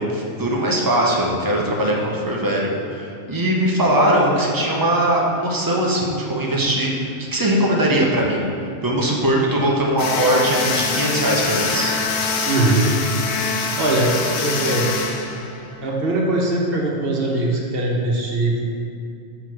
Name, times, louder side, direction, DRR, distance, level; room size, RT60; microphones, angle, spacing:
voice 1, 0.0-8.5 8.8-11.9, right 1 dB, 20° right, -2 dB, 0.7 m, -20 dB
sound 1, 10.0-16.0, left 4 dB, 70° left, 0.8 m, -24 dB
voice 2, 12.4-12.9 13.5-14.1 14.4-14.9 15.8-18.6, right 2 dB, 55° right, -2 dB, 1.1 m, -21 dB
6.2 x 3.9 x 4.8 m, 2.5 s
omnidirectional pair, 1.2 m